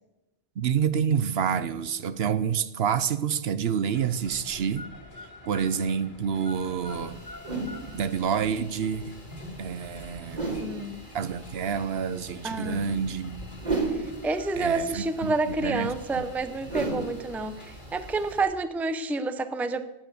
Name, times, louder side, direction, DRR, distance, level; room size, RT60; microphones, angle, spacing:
voice 1, 0.6-4.9 5.5-7.2 7.9-9.1 9.6-10.5 11.1-13.4 14.6-16.3, right 7 dB, 65° right, 14 dB, 0.9 m, -28 dB
sound 1, 3.9-18.2, left 2 dB, 45° left, 2.0 m, -48 dB
sound 2, 6.9-18.4, right 3 dB, 40° right, 4.1 m, -37 dB
voice 2, 10.6-11.0 12.4-13.0 13.9-19.9, right 3 dB, ahead, 11 dB, 0.5 m, -29 dB
16.0 x 9.2 x 6.9 m, 0.99 s
omnidirectional pair, 1.1 m